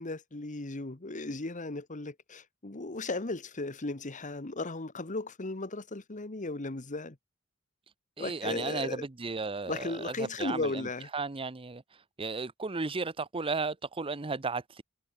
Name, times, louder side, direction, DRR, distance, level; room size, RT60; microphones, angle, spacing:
voice 1, 0.0-7.2 8.2-9.1 9.6-11.1, left 2 dB, 35° left, 1.4 m, -36 dB
voice 2, 8.2-11.8 12.2-14.8, right 4 dB, 25° right, 0.8 m, -34 dB
head